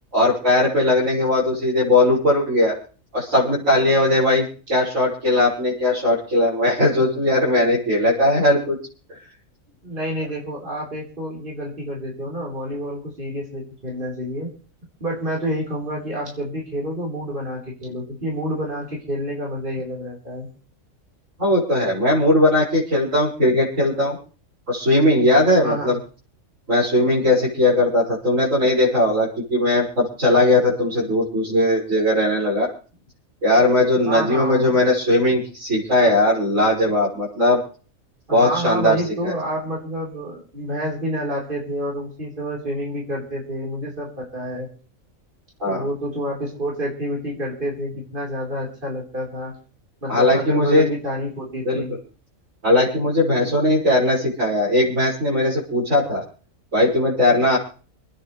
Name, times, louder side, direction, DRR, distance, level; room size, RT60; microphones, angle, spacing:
voice 1, 0.1-2.7 3.1-8.8 9.1-9.2 21.4-24.2 24.7-26.0 26.7-32.7 33.4-37.6 38.3-39.3 45.6-45.8 50.1-50.9 51.6-51.8 52.6-56.2 56.7-57.6, left 1 dB, 70° right, -7 dB, 6.7 m, -19 dB
voice 2, 9.8-14.5 15.0-20.5 25.6-26.0 34.1-34.8 38.3-44.7 45.6-49.5 50.0-51.9 53.4-53.7, equal, 40° right, -4 dB, 4.6 m, -28 dB
28.5 x 9.8 x 3.3 m, 0.39 s
omnidirectional pair, 1.4 m